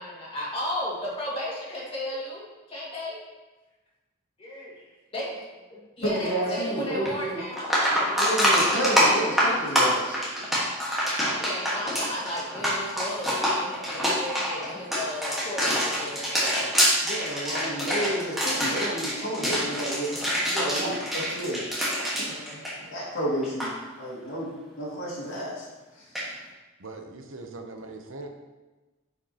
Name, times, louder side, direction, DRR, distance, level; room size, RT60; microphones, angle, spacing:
voice 1, 0.0-2.4 2.7-3.2 4.4-5.4 5.7-9.5 11.3-16.8 22.2-22.6, left 1 dB, 30° left, -6 dB, 2.1 m, -35 dB
voice 2, 6.0-7.4 8.2-10.2 17.0-21.6 22.2-24.5 24.8-25.7 26.0-26.1, right 1 dB, 80° left, -5 dB, 2.3 m, -31 dB
sound 1, 7.1-7.2 7.5-23.2 23.4-23.7 26.1-26.3, equal, ahead, 1.5 m, -25 dB
voice 3, 26.8-28.4, right 3 dB, 80° right, 4 dB, 0.8 m, -40 dB
9.4 x 5.1 x 2.9 m, 1.2 s
head